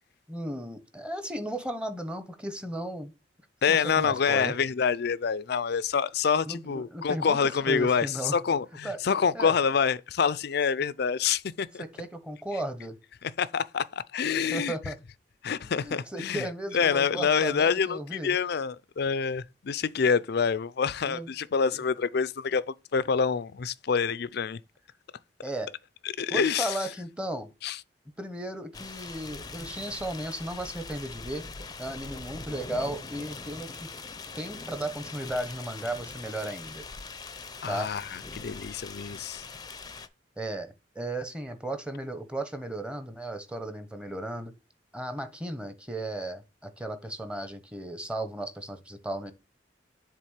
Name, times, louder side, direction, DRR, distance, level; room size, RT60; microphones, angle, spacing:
voice 1, 0.3-3.1 3.7-4.6 6.5-7.4 7.7-8.3 8.8-9.0 9.3-9.5 11.8-13.0 14.5-15.0 15.6-18.4 21.1-21.3 21.7-21.8 25.4-25.7 26.3-27.5 28.2-31.5 31.8-33.7 34.4-36.8 37.7-37.9 40.4-44.5 44.9-49.3, right 1 dB, 5° right, 1.1 m, -35 dB
voice 2, 3.6-11.8 13.2-14.9 15.4-16.5 16.7-24.6 26.0-26.8 27.6-27.8 37.6-39.4, left 6 dB, 65° left, 0.5 m, -27 dB
sound 1, 28.7-40.1, left 4 dB, 25° left, 0.6 m, -42 dB
7.5 x 3.6 x 6.5 m
head